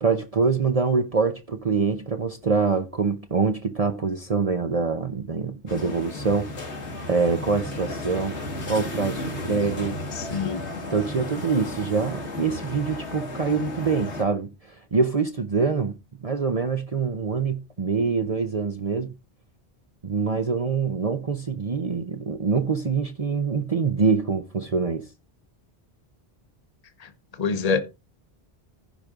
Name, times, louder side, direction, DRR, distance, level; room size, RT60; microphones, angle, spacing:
voice 1, 0.0-6.6 7.1-8.4 8.7-10.0 10.9-15.9 16.2-19.1 20.0-25.1, right 5 dB, 35° right, 0.8 m, -25 dB
sound 1, 5.7-14.2, left 2 dB, 90° left, 2.3 m, -34 dB
voice 2, 10.1-10.7 27.0-27.1 27.4-27.8, left 5 dB, 40° left, 1.0 m, -25 dB
15.0 x 5.2 x 3.7 m
omnidirectional pair, 1.1 m